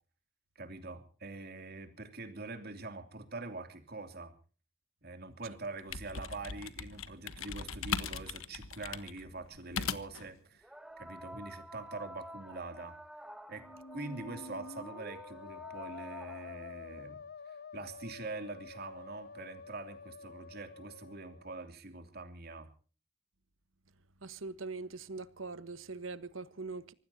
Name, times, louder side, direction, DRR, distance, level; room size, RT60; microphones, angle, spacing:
voice 1, 0.5-4.3 5.0-12.9 13.5-13.6 13.9-17.2 17.4-22.7, right 3 dB, 50° right, 2.8 m, -44 dB
sound 1, 5.6-10.3, left 6 dB, 85° left, 1.2 m, -39 dB
sound 2, 8.5-8.6 10.6-16.8 18.2-18.3 19.2-19.3, equal, 5° right, 1.0 m, -50 dB
Musical instrument, 13.6-21.6, left 4 dB, 50° left, 1.0 m, -49 dB
voice 2, 24.2-26.9, right 3 dB, 70° right, 1.3 m, -42 dB
25.0 x 19.5 x 2.8 m
head